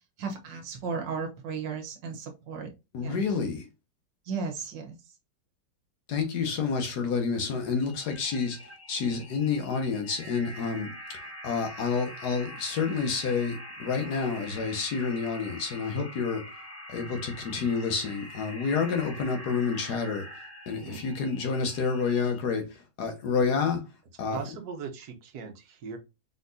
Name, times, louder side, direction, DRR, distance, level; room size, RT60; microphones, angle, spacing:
voice 1, 0.2-2.7 3.0-3.2 4.3-5.0, right 5 dB, 90° right, 1.7 m, -35 dB
voice 2, 2.9-3.6 6.1-8.6 8.9-16.5 16.9-20.3 20.7-23.8 24.2-24.4, left 5 dB, 70° left, 1.5 m, -29 dB
sound 1, 7.8-22.4, equal, 10° left, 1.3 m, -44 dB
voice 3, 20.7-21.0 24.3-26.0, right 6 dB, 65° right, 1.4 m, -39 dB
4.0 x 4.0 x 2.6 m
omnidirectional pair, 1.9 m